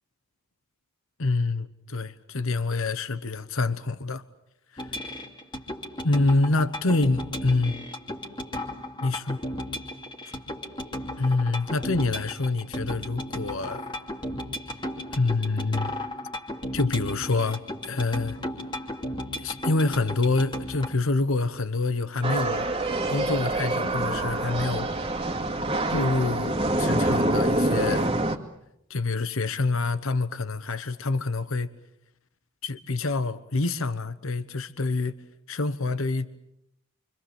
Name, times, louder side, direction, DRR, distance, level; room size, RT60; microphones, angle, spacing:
voice 1, 1.2-4.2 4.7-4.9 6.0-7.8 9.0-9.4 11.2-13.9 15.1-15.9 16.7-18.4 19.4-22.7 23.1-24.9 25.9-28.2 28.9-31.7 32.6-35.1 35.5-36.4, left 3 dB, 70° left, 1.1 m, -26 dB
sound 1, 4.8-20.9, left 1 dB, 20° left, 2.5 m, -35 dB
sound 2, 22.2-28.4, right 2 dB, 25° right, 2.2 m, -26 dB
29.0 x 25.0 x 7.2 m
head